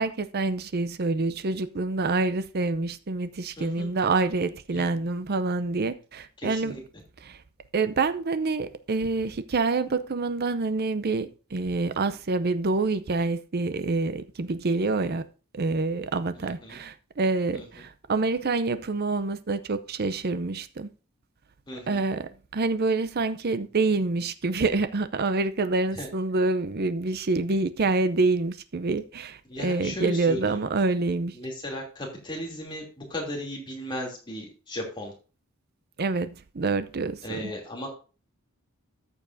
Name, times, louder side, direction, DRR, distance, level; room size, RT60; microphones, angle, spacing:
voice 1, 0.0-6.8 7.2-7.4 7.7-15.2 15.5-20.9 21.9-31.3 36.0-37.5, right 3 dB, 45° right, 0.6 m, -27 dB
voice 2, 3.6-3.9 4.7-4.8 6.4-6.8 16.3-16.8 17.5-17.6 21.7-22.0 25.9-26.1 29.5-30.7 31.3-35.1 37.2-37.9, equal, 20° left, 2.9 m, -36 dB
13.5 x 7.2 x 2.6 m
head